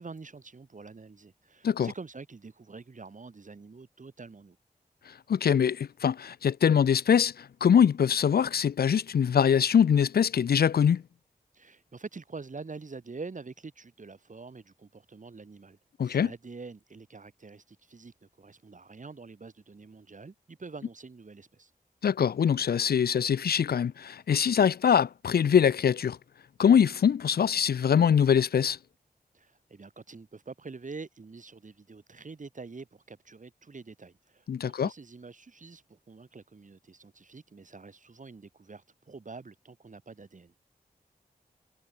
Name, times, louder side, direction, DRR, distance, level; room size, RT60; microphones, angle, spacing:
voice 1, 0.0-4.6 11.5-15.8 16.0-21.7 29.3-40.5, right 4 dB, 55° right, 3.3 m, -46 dB
voice 2, 5.3-11.0 16.0-16.3 22.0-26.2 26.6-28.8 34.5-34.9, left 8 dB, 80° left, 0.5 m, -23 dB
wide cardioid pair, 80°, 16 cm